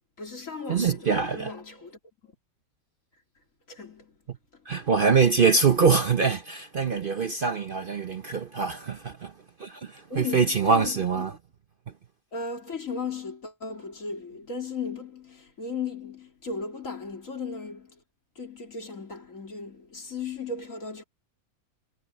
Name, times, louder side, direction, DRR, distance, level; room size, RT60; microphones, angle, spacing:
voice 1, 0.2-2.3 3.7-4.2 4.5-4.7 10.1-11.2 12.3-18.0 18.3-21.0, left 4 dB, 60° left, 3.4 m, -36 dB
voice 2, 0.7-1.5 4.7-9.3 9.6-11.4, right 5 dB, 45° right, 0.8 m, -24 dB
omnidirectional pair, 1.5 m